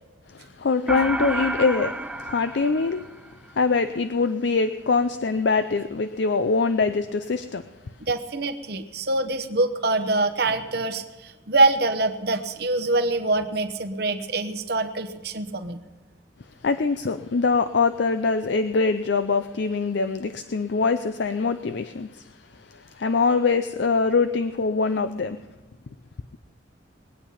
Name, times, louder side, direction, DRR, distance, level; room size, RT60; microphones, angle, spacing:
voice 1, 0.3-3.1 3.5-7.7 16.6-22.3 22.6-25.4, left 4 dB, 60° left, 10 dB, 0.5 m, -23 dB
sound 1, 0.9-3.5, right 1 dB, 5° right, 0.4 m, -30 dB
voice 2, 8.1-15.8, right 2 dB, 55° right, 8 dB, 1.0 m, -24 dB
21.0 x 8.9 x 5.7 m, 1.1 s
head